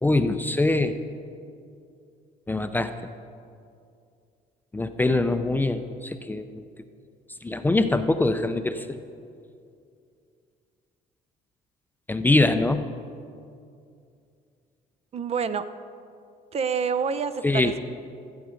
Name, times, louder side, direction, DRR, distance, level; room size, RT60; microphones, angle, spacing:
voice 1, 0.0-1.0 2.5-2.9 4.7-6.6 7.4-9.0 12.1-12.8 17.4-17.7, left 2 dB, 10° left, 9 dB, 0.5 m, -23 dB
voice 2, 15.1-15.7 16.5-17.8, right 6 dB, 40° right, 12 dB, 0.5 m, -27 dB
15.0 x 8.0 x 5.1 m, 2.5 s
cardioid pair, 110°, 17 cm